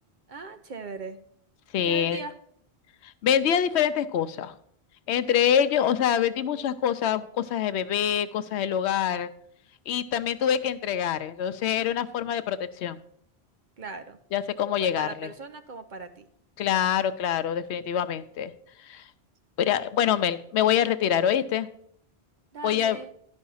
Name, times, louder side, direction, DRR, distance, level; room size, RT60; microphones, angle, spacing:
voice 1, 0.3-1.2 1.9-2.3 13.8-14.2 14.8-16.3 22.5-23.1, right 4 dB, 50° right, 9 dB, 0.8 m, -39 dB
voice 2, 1.7-2.2 3.0-4.6 5.1-9.3 9.9-13.0 14.3-15.1 16.6-18.5 18.8-19.0 19.6-21.7 22.6-23.0, left 9 dB, 85° left, 13 dB, 0.9 m, -25 dB
11.5 x 5.4 x 5.5 m, 0.67 s
omnidirectional pair, 1.1 m